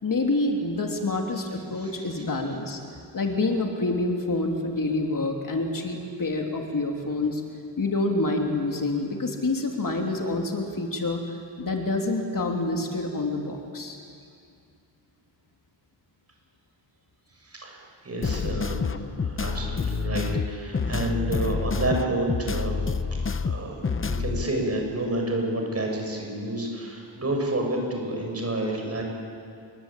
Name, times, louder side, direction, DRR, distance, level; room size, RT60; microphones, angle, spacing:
voice 1, 0.0-2.8 3.1-7.4 7.8-14.0, left 2 dB, 45° left, 2 dB, 2.9 m, -27 dB
voice 2, 1.7-2.2 17.4-23.0 23.4-29.0, right 1 dB, 35° right, 1 dB, 7.1 m, -30 dB
sound 1, 18.2-24.4, left 5 dB, 30° left, 0.8 m, -28 dB
28.5 x 23.0 x 9.0 m, 2.4 s
wide cardioid pair, 135°, 45 cm